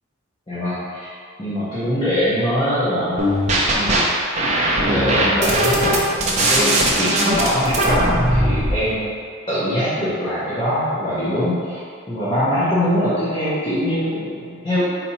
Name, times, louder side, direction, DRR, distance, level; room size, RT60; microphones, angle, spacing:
voice 1, 0.5-1.1 1.4-3.2 3.7-4.1 4.8-9.0 9.5-11.8 12.1-14.8, equal, 25° left, -12 dB, 0.8 m, -22 dB
sound 1, 3.2-4.0 4.4-8.8, right 1 dB, 35° right, 0.5 m, -19 dB
4.2 x 2.8 x 4.2 m, 2.3 s
head